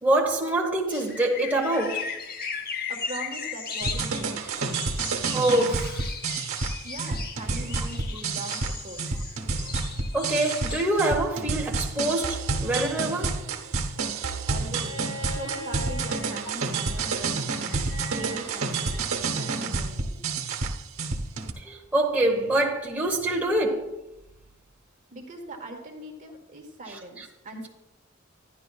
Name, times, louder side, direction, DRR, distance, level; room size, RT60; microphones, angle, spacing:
voice 1, 0.0-2.1 5.3-6.1 10.1-13.4 21.6-23.9 26.9-27.3, right 1 dB, 5° right, 1.2 m, -25 dB
sound 1, 0.9-10.8, left 5 dB, 45° left, 0.9 m, -37 dB
voice 2, 2.9-4.3 6.8-9.1 14.5-14.9 15.2-17.4 18.1-20.2 25.1-27.7, right 1 dB, 40° right, 1.4 m, -40 dB
sound 2, 3.8-21.5, right 4 dB, 85° right, 1.1 m, -29 dB
Bowed string instrument, 14.8-19.8 21.3-21.4, equal, 65° left, 2.8 m, -41 dB
12.0 x 10.5 x 2.4 m
head